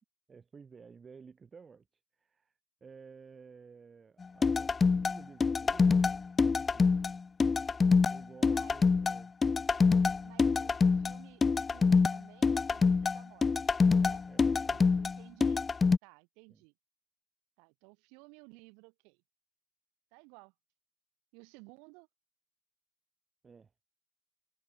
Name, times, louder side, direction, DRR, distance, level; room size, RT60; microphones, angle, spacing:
voice 1, 0.3-1.9 2.1-6.0 6.5-7.0 8.1-9.3 14.3-15.0 16.5-16.6 23.4-23.7, right 5 dB, 30° right, 6.1 m, -54 dB
sound 1, 4.4-16.0, left 4 dB, 25° left, 0.6 m, -26 dB
voice 2, 8.4-8.7 10.2-16.7 17.6-19.2 20.1-20.5 21.3-22.1, right 33 dB, 80° right, 3.5 m, -57 dB
supercardioid pair, 105°, 0 cm